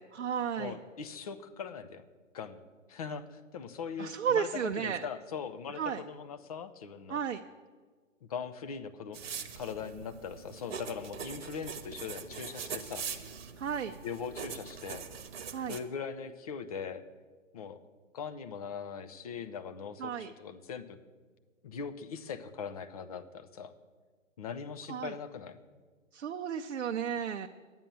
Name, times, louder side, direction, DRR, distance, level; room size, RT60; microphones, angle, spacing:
voice 1, 0.0-0.8 4.0-5.1 5.7-6.0 7.1-7.4 13.6-14.0 15.5-15.8 20.0-20.3 24.9-25.2 26.1-27.5, right 7 dB, 65° right, 5 dB, 0.7 m, -33 dB
voice 2, 0.5-2.0 2.3-2.6 2.9-7.2 8.2-9.2 9.6-13.1 14.0-15.0 15.7-17.0 17.5-17.8 18.1-21.0 21.6-23.7 24.4-25.6, left 6 dB, 30° left, 10 dB, 0.6 m, -40 dB
sound 1, 9.1-15.8, right 6 dB, 50° right, 1.1 m, -42 dB
10.5 x 9.2 x 6.8 m, 1.5 s
figure-of-eight pair, 135°, 39 cm